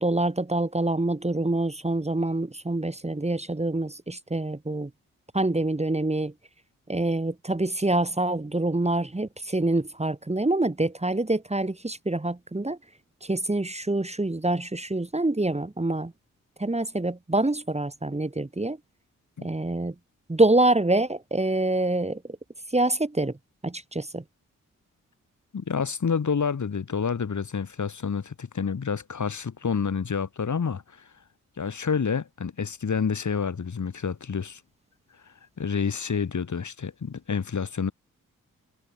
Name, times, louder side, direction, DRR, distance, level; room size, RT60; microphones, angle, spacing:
voice 1, 0.0-4.9 5.3-6.3 6.9-12.8 13.2-16.1 16.6-18.8 19.4-19.9 20.3-22.2 22.7-23.3 23.6-24.2, right 2 dB, 20° right, 2.3 m, -26 dB
voice 2, 25.5-30.8 31.6-34.6 35.6-37.9, left 6 dB, 55° left, 3.8 m, -28 dB
supercardioid pair, 45°, 35 cm